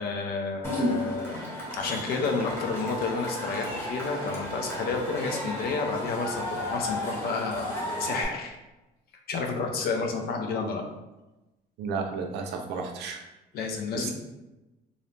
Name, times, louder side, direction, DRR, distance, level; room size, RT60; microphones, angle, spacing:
voice 1, 0.0-8.6 9.3-10.8 13.5-14.1, left 4 dB, 65° left, 3 dB, 0.5 m, -30 dB
Cheering / Crowd, 0.6-8.2, left 1 dB, 15° left, 0.9 m, -33 dB
voice 2, 11.8-13.2 13.9-14.1, right 5 dB, 80° right, 3 dB, 0.5 m, -32 dB
2.6 x 2.0 x 3.1 m, 1.0 s
cardioid pair, 110°, 17 cm